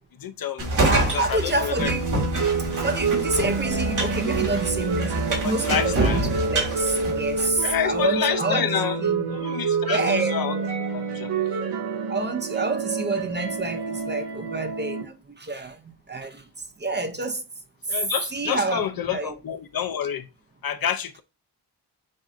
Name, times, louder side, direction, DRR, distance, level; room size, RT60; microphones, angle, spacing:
voice 1, 0.2-0.7 1.1-1.9 5.4-6.2 7.6-9.0 9.3-10.6 10.9-11.3 17.9-20.3 20.6-21.2, left 8 dB, 60° left, 0.6 m, -28 dB
sound 1, 0.6-7.8, right 1 dB, 45° right, 2.4 m, -26 dB
voice 2, 0.9-2.1 2.6-8.7 9.0-9.4 9.9-10.7 12.1-15.8 16.1-17.4 17.9-18.0 18.3-19.3, right 3 dB, 25° right, 0.6 m, -28 dB
sound 2, 1.8-15.0, right 4 dB, 75° right, 1.9 m, -28 dB
7.5 x 2.6 x 2.5 m
wide cardioid pair, 160°, 41 cm